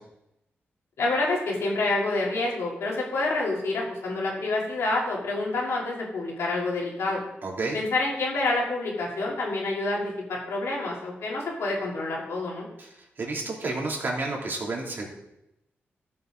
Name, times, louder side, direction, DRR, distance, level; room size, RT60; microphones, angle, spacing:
voice 1, 1.0-7.2 7.7-12.7, left 2 dB, 85° left, -3 dB, 3.5 m, -28 dB
voice 2, 7.4-7.8 12.8-12.9 13.2-15.1, right 3 dB, 50° right, -2 dB, 3.1 m, -30 dB
14.5 x 6.7 x 4.0 m, 0.86 s
cardioid pair, 95°, 4 cm